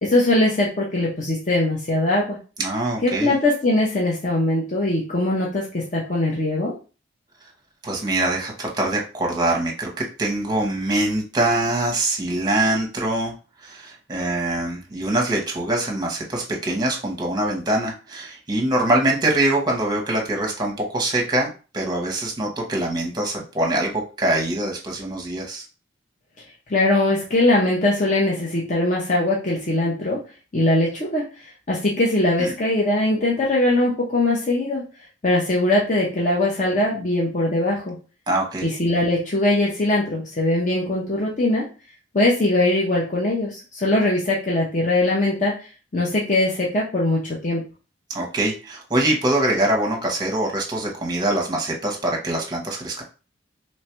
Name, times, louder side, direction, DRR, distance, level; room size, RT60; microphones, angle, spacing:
voice 1, 0.0-2.4 3.0-6.7 26.7-30.2 30.5-31.2 31.7-34.8 35.2-38.0 38.6-41.7 42.1-45.6 45.9-47.6, left 2 dB, 40° left, -4 dB, 0.7 m, -21 dB
voice 2, 2.6-3.3 7.8-13.3 13.6-25.6 32.4-32.5 38.3-38.6 48.1-53.0, right 1 dB, 20° right, 0 dB, 0.8 m, -23 dB
3.1 x 2.4 x 4.3 m, 0.35 s
head